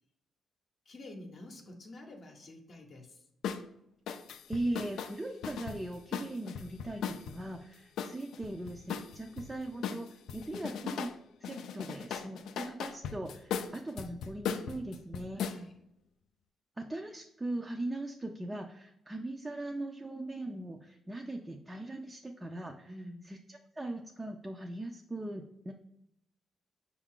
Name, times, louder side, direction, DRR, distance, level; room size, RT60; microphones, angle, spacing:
voice 1, 0.9-3.2 15.3-15.8 22.8-23.3, left 1 dB, 50° left, 2 dB, 0.7 m, -48 dB
sound 1, 3.4-3.6 4.1-7.4 8.0-9.5 9.8-11.2 11.4-15.6, left 7 dB, 85° left, 0.3 m, -38 dB
voice 2, 4.5-11.1 11.4-15.4 16.8-22.9 23.2-25.7, right 1 dB, 15° right, 2 dB, 0.4 m, -40 dB
5.5 x 2.4 x 3.6 m, 0.79 s
cardioid pair, 110°, 0 cm